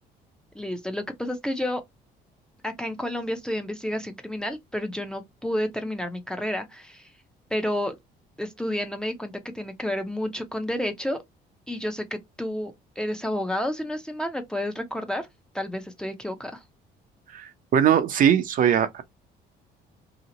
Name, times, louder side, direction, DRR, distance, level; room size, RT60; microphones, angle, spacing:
voice 1, 0.5-1.8 2.6-7.1 7.5-7.9 8.4-11.2 11.7-15.3 15.5-16.6, left 1 dB, 5° left, 0.6 m, -30 dB
voice 2, 17.3-19.0, right 9 dB, 55° right, 0.6 m, -21 dB
2.8 x 2.0 x 3.8 m
cardioid pair, 110°, 17 cm